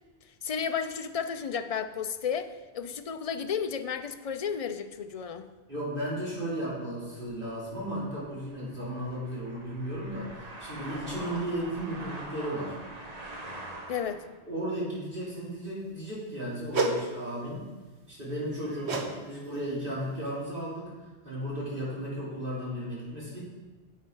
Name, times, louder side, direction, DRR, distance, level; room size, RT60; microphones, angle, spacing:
voice 1, 0.4-5.5 13.9-14.2, left 7 dB, 45° left, 9 dB, 0.5 m, -33 dB
voice 2, 5.7-12.8 14.5-17.6 18.1-20.9 21.2-23.4, equal, 55° right, -8 dB, 3.3 m, -35 dB
sound 1, 7.2-14.4, right 1 dB, 40° right, 1.3 m, -43 dB
sound 2, 16.7-17.0 18.9-19.1 19.4-19.7 20.3-20.4, right 3 dB, 80° right, 1.3 m, -28 dB
9.9 x 8.5 x 4.6 m, 1.2 s
omnidirectional pair, 1.1 m